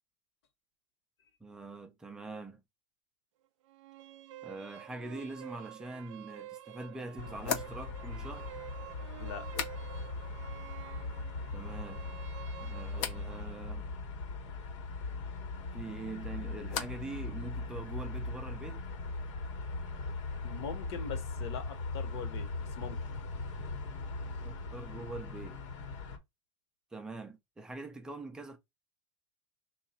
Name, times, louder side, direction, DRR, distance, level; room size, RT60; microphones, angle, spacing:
voice 1, 1.4-2.6 4.4-8.5 11.5-12.1 12.6-14.0 15.7-18.8 24.4-25.6 26.9-28.6, right 2 dB, 5° right, 0.3 m, -43 dB
sound 1, 3.7-13.6, right 14 dB, 80° right, 0.4 m, -49 dB
sound 2, 6.2-6.3 7.4-10.3 10.5-11.1 11.5-12.1 12.9-13.3 15.7-17.2 17.4-18.0, left 7 dB, 40° left, 0.6 m, -42 dB
sound 3, 7.2-26.2, left 3 dB, 80° left, 1.2 m, -40 dB
voice 2, 20.4-23.0, left 6 dB, 60° left, 1.0 m, -42 dB
3.2 x 2.3 x 4.1 m
supercardioid pair, 175°, 16 cm